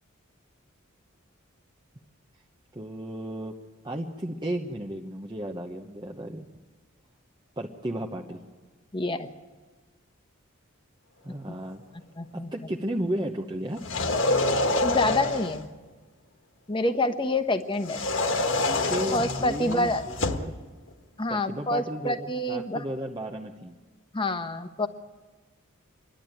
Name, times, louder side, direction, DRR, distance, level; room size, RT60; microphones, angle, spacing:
voice 1, 2.7-3.5 3.8-6.5 7.6-8.4 11.2-11.8 12.3-13.9 18.7-20.5 21.3-23.7, right 1 dB, 20° right, 1 dB, 0.9 m, -34 dB
voice 2, 8.9-9.3 11.5-11.6 12.2-12.5 14.8-15.7 16.7-18.0 19.1-20.0 21.2-22.8 24.1-24.9, left 2 dB, 25° left, 8 dB, 1.0 m, -27 dB
sound 1, 13.8-15.6 17.8-20.5, left 2 dB, 65° left, 1.5 m, -26 dB
28.0 x 11.5 x 9.0 m, 1.3 s
head